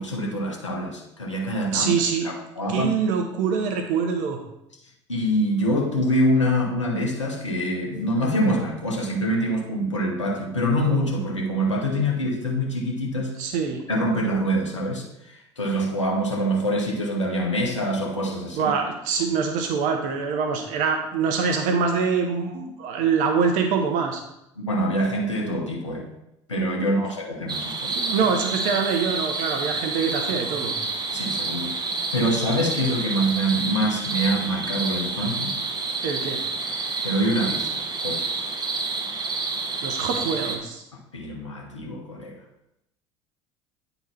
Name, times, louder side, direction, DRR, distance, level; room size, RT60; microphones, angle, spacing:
voice 1, 0.0-1.9 2.2-2.9 5.1-13.4 13.9-18.7 24.6-26.1 26.5-28.3 31.1-31.8 32.1-35.6 37.0-38.4 41.1-42.4, equal, 90° left, 0 dB, 0.9 m, -25 dB
voice 2, 1.7-2.3 2.7-4.4 13.4-13.8 18.5-24.2 26.7-26.9 27.9-30.7 36.0-36.4 39.8-40.8, right 5 dB, 60° right, 5 dB, 0.9 m, -24 dB
sound 1, 27.5-40.6, right 4 dB, 30° right, 1.0 m, -29 dB
9.0 x 4.0 x 4.3 m, 0.83 s
figure-of-eight pair, 65°, 15 cm